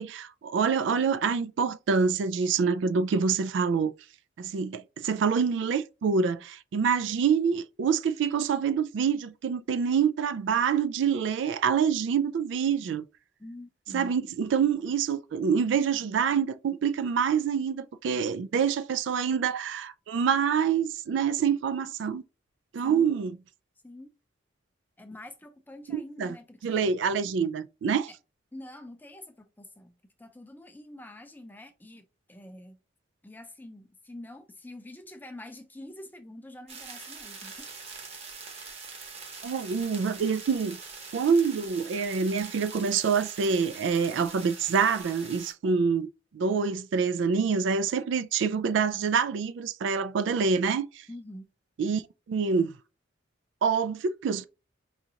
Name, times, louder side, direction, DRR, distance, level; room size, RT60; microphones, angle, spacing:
voice 1, 0.0-3.9 4.4-13.0 13.9-22.2 22.7-23.3 25.9-26.3 26.6-28.1 39.4-40.8 41.1-46.1 46.3-51.1 51.8-52.0 52.3-52.7 53.6-54.5, right 6 dB, 80° right, 0.3 m, -26 dB
voice 2, 13.4-14.2 22.8-23.2 23.8-24.1 25.0-26.8 28.5-32.8 33.2-37.7 51.1-51.5, left 1 dB, 10° left, 0.5 m, -46 dB
sound 1, 36.7-45.5, right 4 dB, 35° right, 1.0 m, -43 dB
5.0 x 2.4 x 2.8 m
head